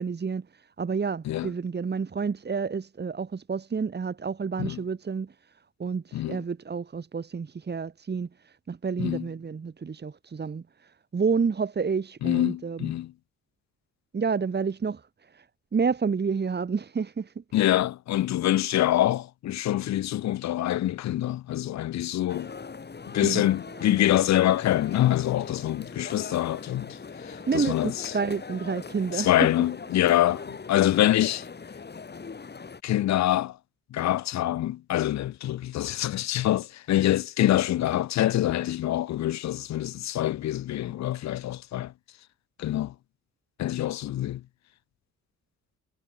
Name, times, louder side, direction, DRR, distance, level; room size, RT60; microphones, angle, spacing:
voice 1, 0.0-5.3 5.8-12.9 14.1-15.5 15.7-17.4 23.2-23.4 23.8-24.0 27.5-29.3, right 5 dB, 35° right, 2.6 m, -29 dB
voice 2, 12.2-13.1 17.5-22.5 23.1-28.1 29.1-31.5 32.8-33.6 33.9-41.9 42.6-42.9 43.6-44.4, left 13 dB, 65° left, 0.8 m, -25 dB
sound 1, 22.3-32.8, left 5 dB, 35° left, 7.8 m, -41 dB
cardioid pair, 90°, 30 cm